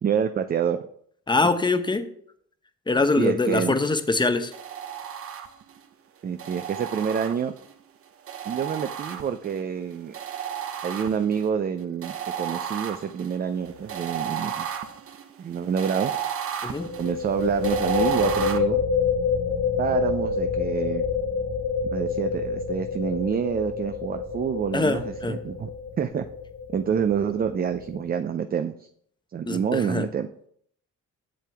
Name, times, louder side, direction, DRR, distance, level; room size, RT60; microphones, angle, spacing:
voice 1, 0.0-0.8 3.2-3.8 6.2-7.5 8.5-10.1 10.8-14.7 15.4-16.1 17.0-18.8 19.8-21.0 21.9-25.7 26.0-26.2 26.7-28.9 29.3-30.3, right 7 dB, 30° right, 9 dB, 0.4 m, -27 dB
voice 2, 1.3-2.1 2.9-4.5 16.6-16.9 24.7-25.4 29.5-30.1, left 3 dB, 15° left, 9 dB, 0.8 m, -23 dB
sound 1, 4.5-5.8 6.4-7.7 8.3-9.6 10.1-11.5 12.0-18.6, right 9 dB, 50° right, 0.8 m, -33 dB
sound 2, 13.6-13.9 14.2-14.3 16.7-28.1, left 5 dB, 80° left, 3.1 m, -28 dB
7.6 x 6.8 x 3.4 m, 0.65 s
cardioid pair, 90°, 30 cm